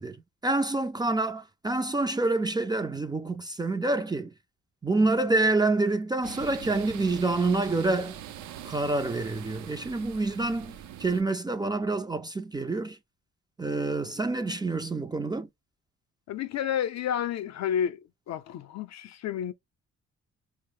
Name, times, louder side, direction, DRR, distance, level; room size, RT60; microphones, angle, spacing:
voice 1, 0.0-4.3 4.8-8.2 8.6-13.0 13.6-15.5, right 2 dB, 15° right, 0.3 m, -27 dB
sound 1, 6.2-11.2, right 10 dB, 70° right, 0.5 m, -43 dB
voice 2, 16.3-18.0 18.3-19.5, left 9 dB, 60° left, 0.5 m, -30 dB
4.5 x 2.0 x 3.1 m
cardioid pair, 90°, 30 cm